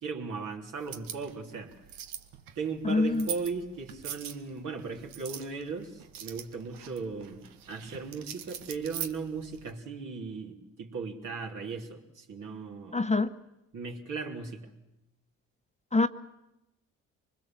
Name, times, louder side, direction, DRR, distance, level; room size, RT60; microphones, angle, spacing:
voice 1, 0.0-1.8 2.6-13.1 13.7-14.7, right 4 dB, 60° right, 2 dB, 3.6 m, -37 dB
sound 1, 0.8-9.7, right 9 dB, 85° right, 1.3 m, -43 dB
voice 2, 2.8-3.3 12.9-13.3 15.9-16.1, left 3 dB, 20° left, 10 dB, 1.0 m, -25 dB
24.5 x 20.5 x 7.5 m, 0.91 s
supercardioid pair, 55°, 34 cm